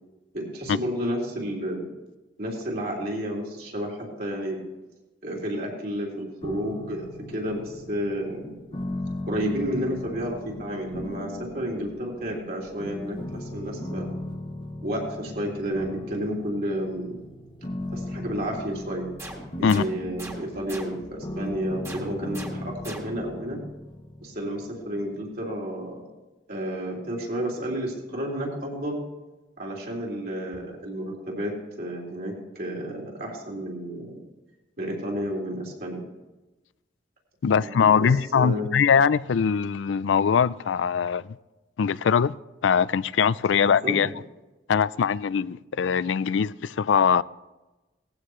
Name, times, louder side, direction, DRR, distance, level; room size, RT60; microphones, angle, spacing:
voice 1, 0.3-1.9 2.4-4.6 5.2-8.5 9.3-14.1 14.8-17.2 17.9-19.1 19.6-23.6 24.2-26.1 26.5-29.0 29.6-31.5 31.8-34.2 34.8-36.1 37.5-38.7 43.5-44.0, equal, 55° right, 3.7 m, -31 dB
sound 1, 6.4-25.4, left 1 dB, 30° left, 0.9 m, -38 dB
sound 2, 19.2-21.3 21.8-23.4, right 1 dB, 15° right, 1.7 m, -41 dB
voice 2, 37.4-41.2 41.8-42.3 42.6-44.1 44.7-47.2, left 6 dB, 85° left, 0.4 m, -22 dB
19.0 x 15.0 x 3.2 m
head